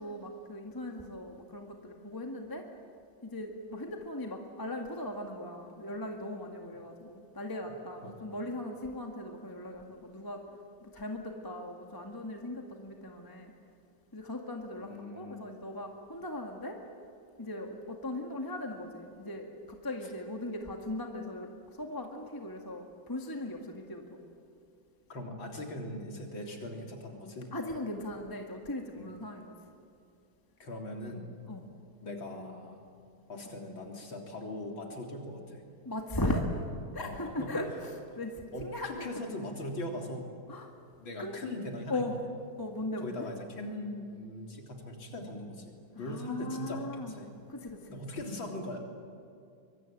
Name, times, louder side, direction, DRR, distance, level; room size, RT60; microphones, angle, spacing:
voice 1, 0.0-2.6 3.2-10.4 10.8-13.5 14.1-16.8 17.4-21.5 21.8-24.2 27.5-29.5 31.5-31.7 35.9-36.5 36.9-38.9 40.5-40.7 41.2-41.4 41.9-42.1 42.6-43.3 46.0-47.1 47.5-48.0, left 1 dB, 10° left, 2 dB, 1.8 m, -38 dB
voice 2, 14.8-15.4 20.0-20.1 25.1-27.5 28.9-29.1 30.6-31.3 32.0-32.8 33.3-35.6 37.0-37.5 38.5-40.3 41.0-42.0 43.0-45.7 46.0-47.3 47.9-48.8, left 1 dB, 80° left, 1 dB, 4.2 m, -40 dB
24.0 x 23.5 x 9.2 m, 2.5 s
omnidirectional pair, 2.2 m